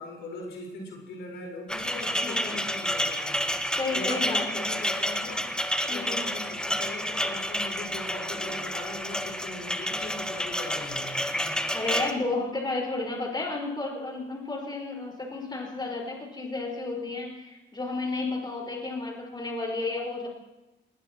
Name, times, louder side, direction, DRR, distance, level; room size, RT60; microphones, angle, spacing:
voice 1, 0.0-3.4 3.9-5.5 5.9-11.2, left 2 dB, 75° left, 0 dB, 4.6 m, -40 dB
sound 1, 1.7-12.1, equal, 5° left, 1.4 m, -30 dB
voice 2, 2.2-2.7 3.8-4.7 5.9-6.3 11.7-20.3, left 3 dB, 20° left, -1 dB, 5.1 m, -32 dB
20.0 x 19.5 x 3.0 m, 0.99 s
cardioid pair, 90°, 20 cm